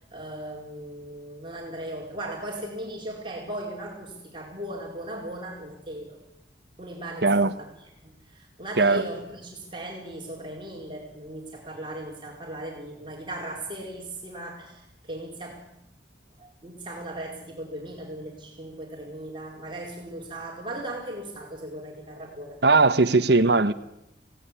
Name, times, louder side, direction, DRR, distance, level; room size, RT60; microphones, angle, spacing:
voice 1, 0.0-6.2 6.8-7.7 8.0-15.7 16.4-22.6 23.4-23.5, right 1 dB, 25° right, 4.4 m, -38 dB
voice 2, 7.2-7.5 8.8-9.0 22.6-23.7, right 3 dB, 65° right, 1.2 m, -19 dB
26.0 x 17.5 x 9.9 m
head